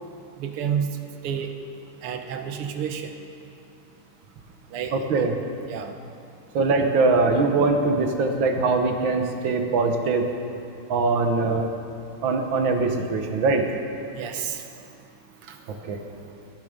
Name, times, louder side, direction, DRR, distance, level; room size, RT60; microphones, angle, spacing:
voice 1, 0.4-0.9 1.2-1.5 2.0-3.1 4.7-5.3 5.7-5.9 14.2-14.6, right 8 dB, 90° right, 6 dB, 1.9 m, -30 dB
voice 2, 6.6-10.3 10.9-11.7 12.2-13.7 15.9-16.0, right 3 dB, 65° right, 5 dB, 1.8 m, -22 dB
19.5 x 10.5 x 5.1 m, 2.5 s
omnidirectional pair, 2.4 m